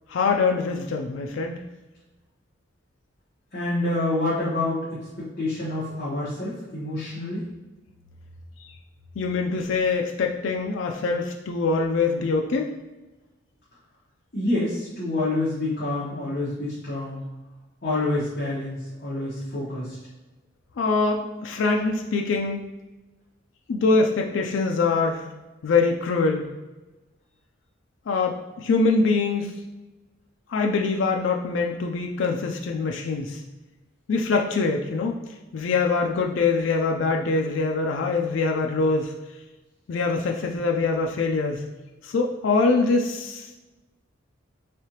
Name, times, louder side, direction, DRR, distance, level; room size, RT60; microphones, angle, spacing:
voice 1, 0.1-1.6 8.6-8.7 9.2-12.7 20.8-22.6 23.7-25.2 25.6-26.5 28.1-29.5 30.5-33.4 34.1-35.2 35.5-39.1 39.9-41.6 42.0-43.6, left 4 dB, 70° left, 2 dB, 0.4 m, -24 dB
voice 2, 3.5-7.5 14.3-17.2 17.8-20.0, left 2 dB, 45° left, -9 dB, 1.0 m, -27 dB
3.6 x 3.3 x 2.8 m, 1.1 s
head